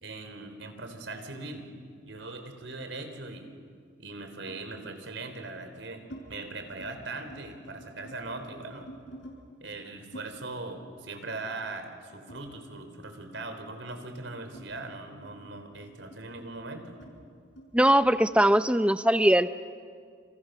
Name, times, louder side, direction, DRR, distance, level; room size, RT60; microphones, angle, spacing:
voice 1, 0.0-1.7 2.0-3.5 4.0-6.0 6.3-8.9 9.6-17.0, right 2 dB, 75° right, 7 dB, 4.0 m, -40 dB
sound 1, 2.0-3.2 4.5-4.7 5.4-6.2 6.6-6.9 7.2-9.4 10.1-13.0 13.3-18.3, right 1 dB, 70° left, 6.6 m, -51 dB
voice 2, 17.7-19.5, right 1 dB, 5° right, 12 dB, 0.6 m, -21 dB
29.5 x 29.5 x 6.8 m, 2.1 s
head